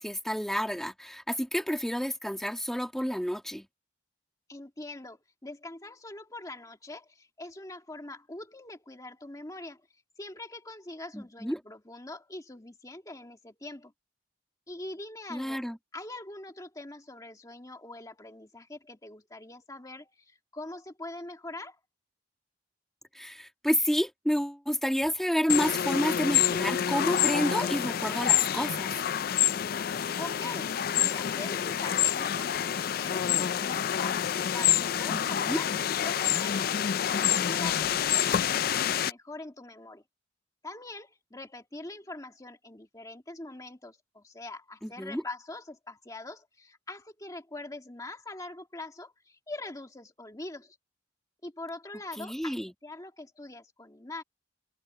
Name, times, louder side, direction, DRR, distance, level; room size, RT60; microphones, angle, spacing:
voice 1, 0.0-3.7 11.1-11.6 15.3-15.8 23.1-28.9 35.1-35.6 44.8-45.2 52.2-52.7, equal, ahead, 2.2 m, -30 dB
voice 2, 4.5-9.9 10.2-13.9 14.7-15.6 15.9-21.8 30.2-35.7 36.0-36.7 37.1-40.0 40.6-50.8 51.4-54.2, left 2 dB, 20° left, 2.0 m, -43 dB
sound 1, 25.5-39.1, left 10 dB, 55° left, 0.4 m, -27 dB
head